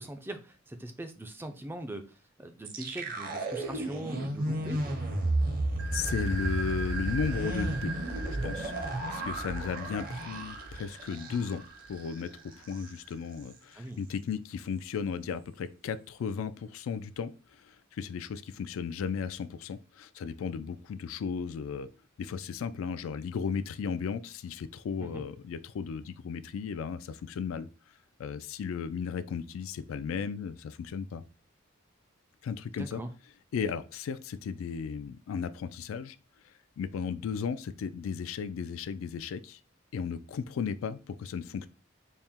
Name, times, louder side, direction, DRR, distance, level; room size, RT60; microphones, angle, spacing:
voice 1, 0.0-5.0 13.8-14.0 25.0-25.2 32.8-33.1, right 1 dB, 10° right, 0.3 m, -41 dB
sound 1, 2.6-11.7 12.0-12.1 12.5-12.9, right 1 dB, 45° right, 0.6 m, -33 dB
sound 2, 5.8-13.3, right 4 dB, 75° right, 1.3 m, -42 dB
voice 2, 5.9-7.9 8.4-8.7 9.1-11.6 11.9-12.3 12.6-17.3 17.6-21.9 22.2-27.7 28.2-31.2 32.4-33.0 33.5-36.2 36.8-39.6 39.9-41.7, left 6 dB, 85° left, 0.3 m, -35 dB
4.2 x 2.1 x 3.5 m
head